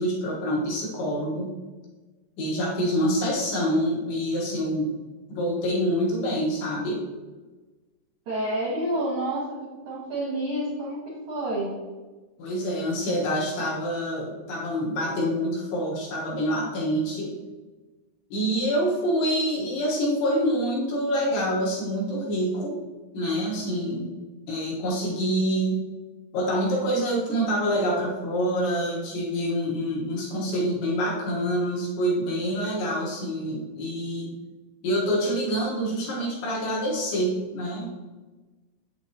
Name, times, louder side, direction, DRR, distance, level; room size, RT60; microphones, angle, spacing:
voice 1, 0.0-1.5 2.4-4.9 5.3-7.0 12.4-17.3 18.3-22.8 23.1-24.1 24.5-25.8 26.3-34.3 34.8-37.9, equal, 70° left, -4 dB, 3.2 m, -26 dB
voice 2, 8.3-9.4 9.9-11.7, right 1 dB, 75° right, -6 dB, 1.7 m, -28 dB
7.9 x 7.6 x 2.9 m, 1.2 s
omnidirectional pair, 5.9 m